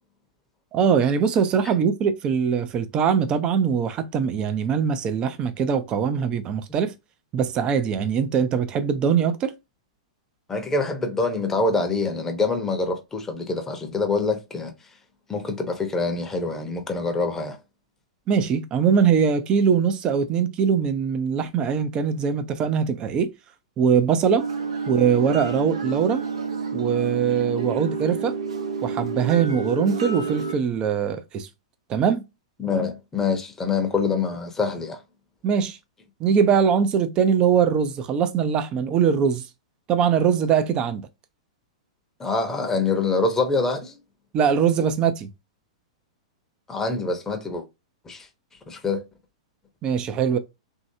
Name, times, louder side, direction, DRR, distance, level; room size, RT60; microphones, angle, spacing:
voice 1, 0.7-6.9 7.3-9.5 18.3-23.3 23.8-24.5 24.9-26.2 26.7-28.4 28.8-31.5 31.9-32.2 35.4-35.8 36.2-39.4 39.9-41.1 44.3-45.3 49.8-50.4, right 7 dB, 30° right, 0.6 m, -22 dB
voice 2, 10.5-14.7 15.3-17.6 32.6-35.0 42.2-44.0 46.7-47.6 48.1-48.3 48.7-49.0, left 3 dB, 15° left, 0.9 m, -25 dB
sound 1, 24.4-30.5, right 5 dB, 70° right, 0.8 m, -29 dB
3.1 x 2.8 x 2.7 m
figure-of-eight pair, 105°, 3 cm